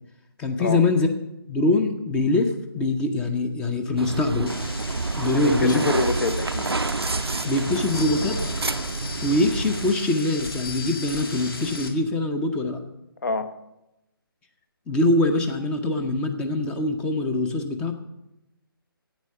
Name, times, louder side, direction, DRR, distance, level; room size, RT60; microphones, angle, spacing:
voice 1, 0.4-1.1 1.5-4.6 5.2-5.8 7.4-8.4 9.2-12.8 14.9-17.9, left 2 dB, 10° left, 6 dB, 0.6 m, -23 dB
sound 1, 4.0-9.9, right 3 dB, 85° right, 0.5 m, -28 dB
sound 2, 4.5-11.9, left 2 dB, 70° left, 2.0 m, -36 dB
voice 2, 5.3-6.7 13.2-13.5, left 3 dB, 50° left, 11 dB, 1.0 m, -26 dB
10.5 x 8.8 x 6.7 m, 0.89 s
figure-of-eight pair, 145°, 13 cm